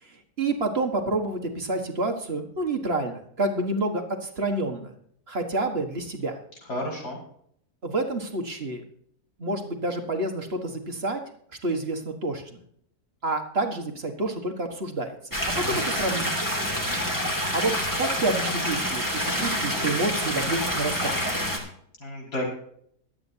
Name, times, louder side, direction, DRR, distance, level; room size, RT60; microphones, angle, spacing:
voice 1, 0.0-4.9 5.3-6.4 7.8-8.8 9.4-11.2 11.6-12.4 13.2-15.2 15.5-16.3 17.5-21.2, right 2 dB, 40° right, 4 dB, 1.7 m, -28 dB
voice 2, 6.7-7.2 15.6-16.3 22.0-22.5, left 1 dB, 90° left, -3 dB, 6.0 m, -33 dB
sound 1, 15.3-21.6, equal, 10° left, 2.7 m, -27 dB
23.0 x 8.8 x 2.8 m, 0.67 s
omnidirectional pair, 1.7 m